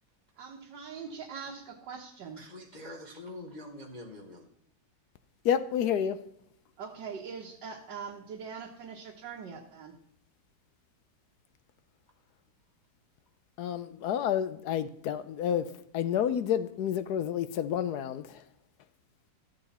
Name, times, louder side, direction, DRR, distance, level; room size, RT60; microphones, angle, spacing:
voice 1, 0.4-2.4 5.9-6.0 6.8-10.0, right 6 dB, 70° right, 1.8 m, -42 dB
voice 2, 2.4-4.5, left 1 dB, 30° left, 0.9 m, -45 dB
voice 3, 5.4-6.2 13.6-18.2, left 9 dB, 70° left, 1.0 m, -29 dB
13.0 x 8.1 x 4.2 m
omnidirectional pair, 2.0 m